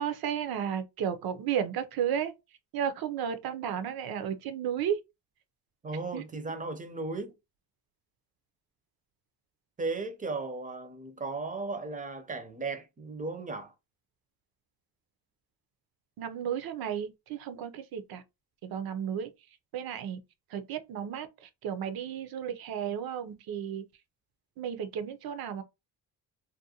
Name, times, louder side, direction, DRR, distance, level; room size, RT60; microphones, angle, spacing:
voice 1, 0.0-2.3 2.7-5.0 6.1-6.2 16.2-18.2 18.6-19.3 19.7-20.2 20.5-23.8 24.6-25.6, right 8 dB, 60° right, 0.6 m, -33 dB
voice 2, 5.8-7.3 9.8-13.7, right 3 dB, 20° right, 0.5 m, -36 dB
2.5 x 2.1 x 2.7 m
cardioid pair, 95°, 40 cm